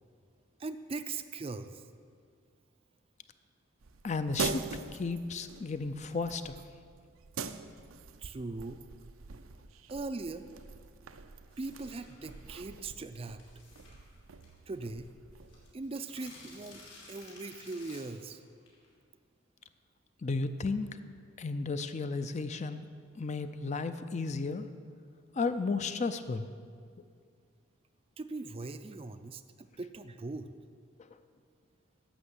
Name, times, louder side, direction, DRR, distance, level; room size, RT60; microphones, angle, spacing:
voice 1, 0.6-1.8 8.2-8.9 9.9-10.5 11.6-13.4 14.7-15.1 15.7-16.8 17.1-18.4 28.2-30.5, right 3 dB, 30° right, 10 dB, 0.4 m, -40 dB
sound 1, 3.8-15.7, right 5 dB, 85° right, 0.6 m, -43 dB
voice 2, 4.0-4.7 4.9-6.6 20.2-20.9 21.4-22.8 23.2-24.7 25.3-26.5, left 4 dB, 35° left, 11 dB, 0.4 m, -33 dB
sound 2, 11.5-12.4 13.4-14.8 15.1-15.2 15.4-18.9, left 3 dB, 70° left, 3.1 m, -54 dB
11.5 x 6.6 x 8.0 m, 2.1 s
head